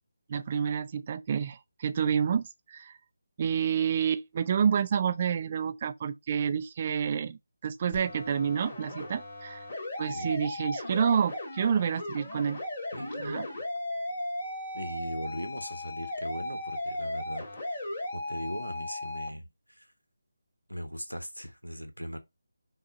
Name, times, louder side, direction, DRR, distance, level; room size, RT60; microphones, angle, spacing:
voice 1, 0.3-2.9 3.4-9.6 10.0-12.6 13.2-13.4, right 7 dB, 30° right, 0.3 m, -29 dB
sound 1, 7.9-19.3, left 1 dB, 35° left, 1.6 m, -36 dB
voice 2, 12.9-13.6 14.7-17.8 18.1-19.9 20.7-22.2, equal, 90° left, 1.0 m, -39 dB
5.9 x 2.2 x 3.9 m
figure-of-eight pair, 155°, 0 cm